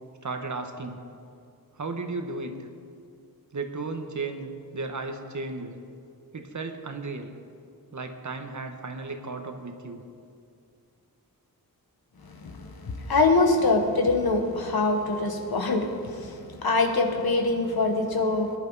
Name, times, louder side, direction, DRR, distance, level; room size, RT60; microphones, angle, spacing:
voice 1, 0.2-1.0 1.7-2.7 3.5-5.8 6.3-7.3 7.9-10.0, right 3 dB, 50° right, 6 dB, 1.3 m, -34 dB
voice 2, 12.4-18.6, left 3 dB, 75° left, 4 dB, 1.6 m, -24 dB
21.0 x 10.5 x 4.1 m, 2.4 s
wide cardioid pair, 90°, 37 cm